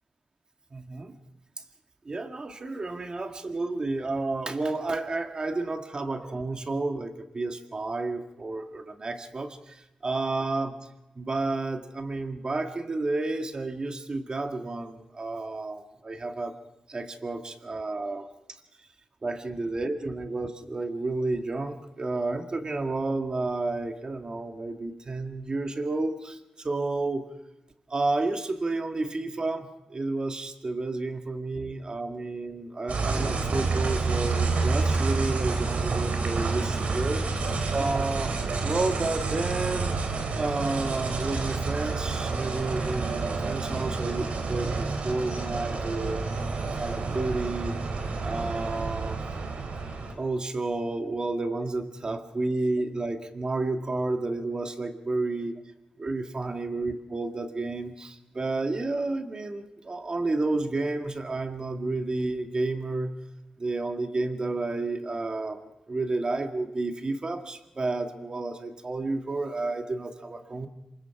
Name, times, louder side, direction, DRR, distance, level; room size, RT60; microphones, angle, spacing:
voice 1, 0.7-1.1 2.1-10.8 11.2-16.5 16.9-18.3 19.2-27.2 27.9-37.2 37.7-38.4 38.6-40.0 40.3-47.8 48.2-49.2 50.1-55.6 56.0-63.1 63.6-70.7, right 2 dB, 35° right, 5 dB, 2.0 m, -31 dB
sound 1, 32.9-50.1, right 4 dB, 70° right, 3.8 m, -29 dB
27.0 x 24.5 x 4.8 m, 0.90 s
wide cardioid pair, 100°, 2 cm